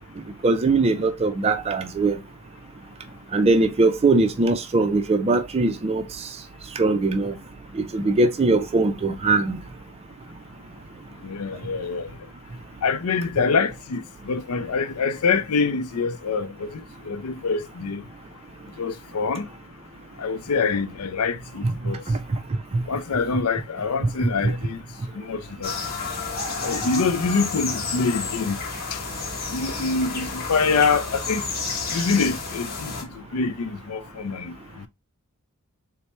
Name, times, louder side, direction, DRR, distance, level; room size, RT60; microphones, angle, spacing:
voice 1, 0.4-2.2 3.3-6.0 6.8-7.3 7.8-9.6 21.6-22.2 22.7-22.8 24.4-24.5, right 3 dB, 25° right, 0.4 m, -21 dB
voice 2, 11.2-12.1 12.8-18.0 18.8-19.5 20.2-22.0 22.9-24.8 25.1-25.7 26.6-28.6 28.9-29.0 29.5-31.4 31.9-34.9, left 4 dB, 75° left, 0.5 m, -25 dB
sound 1, 25.6-33.0, left 4 dB, 45° left, 1.0 m, -31 dB
4.3 x 2.1 x 3.1 m
head